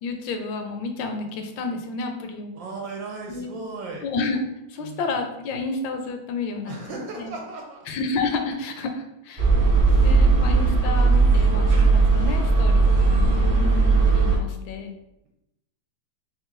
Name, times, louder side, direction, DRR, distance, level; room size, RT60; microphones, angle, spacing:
voice 1, 0.0-2.5 3.3-3.5 4.0-4.4 4.7-6.7 7.1-7.3 7.9-9.5 10.0-15.0, left 3 dB, 80° left, 4 dB, 1.2 m, -30 dB
voice 2, 2.5-4.0 4.8-5.1 6.7-7.9 9.8-10.6, right 3 dB, 75° right, 0 dB, 1.3 m, -37 dB
sound 1, 9.4-14.4, right 3 dB, 40° right, 0.8 m, -18 dB
3.1 x 3.0 x 3.7 m, 0.88 s
omnidirectional pair, 2.1 m